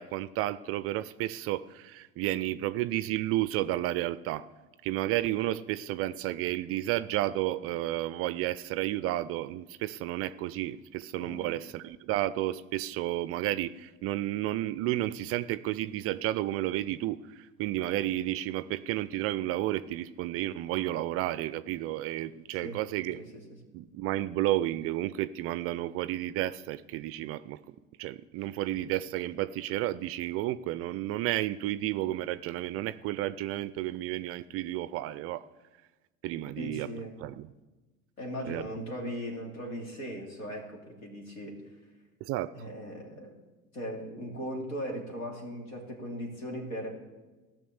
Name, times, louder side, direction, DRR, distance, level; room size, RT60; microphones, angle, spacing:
voice 1, 0.0-4.5 4.8-23.2 23.7-27.6 28.0-35.4 36.2-36.9 37.2-37.5 38.5-38.6 42.2-42.5, right 14 dB, 35° right, 15 dB, 0.4 m, -32 dB
voice 2, 36.6-37.1 38.2-41.6 42.5-43.4 43.7-46.9, equal, 75° left, 0 dB, 2.9 m, -38 dB
15.5 x 6.0 x 7.1 m, 1.2 s
figure-of-eight pair, 70°, 41 cm